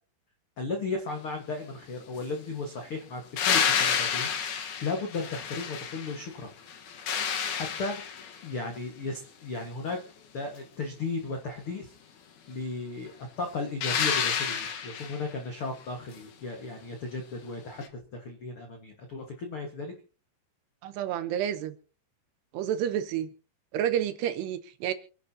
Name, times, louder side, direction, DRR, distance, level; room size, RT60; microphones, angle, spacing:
voice 1, 0.6-4.3 4.8-6.5 7.5-8.0 8.4-10.0 10.3-11.9 12.5-13.1 13.4-19.9, left 3 dB, 85° left, 3 dB, 1.2 m, -35 dB
sound 1, 3.4-6.3 6.7-8.4 13.8-15.3 17.8-17.9, left 7 dB, 60° left, 2.1 m, -29 dB
voice 2, 20.8-21.7 22.5-23.3 23.7-24.9, right 10 dB, 75° right, 10 dB, 2.8 m, -29 dB
26.5 x 10.5 x 2.9 m, 0.38 s
omnidirectional pair, 5.3 m